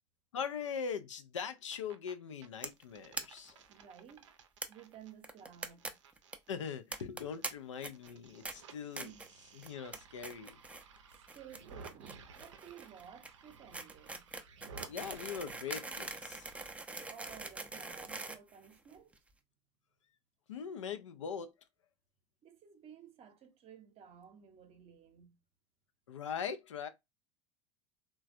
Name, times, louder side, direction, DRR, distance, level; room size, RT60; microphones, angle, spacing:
voice 1, 0.3-3.6 6.5-9.1 9.5-10.6 14.9-16.5 20.5-21.5 26.1-26.9, left 7 dB, 80° left, 0.4 m, -41 dB
sound 1, 1.5-2.1 2.4-7.5 7.8-16.7, right 6 dB, 75° right, 0.5 m, -56 dB
sound 2, 2.6-2.8 3.1-3.2 3.5-3.6 3.8-3.9 4.6-4.7 5.2-5.9 6.2-6.4 6.9-7.5 7.8-8.1 8.4-8.5 9.0-9.3 9.6-10.0 10.2-10.8 11.1-19.2, right 2 dB, 10° right, 0.4 m, -43 dB
voice 2, 3.7-4.3 4.7-6.0 9.0-9.3 11.1-14.3 17.1-19.2 22.4-25.4, right 8 dB, 40° right, 0.7 m, -55 dB
3.2 x 2.2 x 2.4 m
hypercardioid pair, 75°, 15 cm